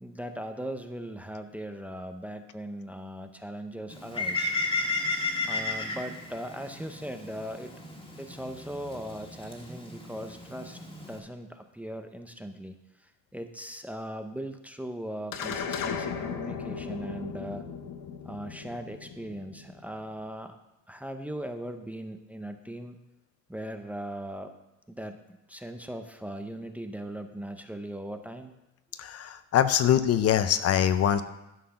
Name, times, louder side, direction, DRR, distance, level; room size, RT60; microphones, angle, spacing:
voice 1, 0.0-4.5 5.4-7.7 8.2-10.8 11.1-12.8 13.3-17.6 18.2-20.6 20.9-23.0 23.5-24.5 24.9-25.2 25.5-28.5, right 1 dB, 5° right, 6 dB, 0.6 m, -39 dB
Bird, 3.9-11.2, left 2 dB, 15° left, 1.8 m, -34 dB
sound 1, 15.3-19.9, left 6 dB, 85° left, 1.0 m, -36 dB
voice 2, 29.0-31.2, left 9 dB, 50° left, 12 dB, 0.6 m, -23 dB
11.5 x 6.4 x 5.8 m, 0.94 s
cardioid pair, 140°, 32 cm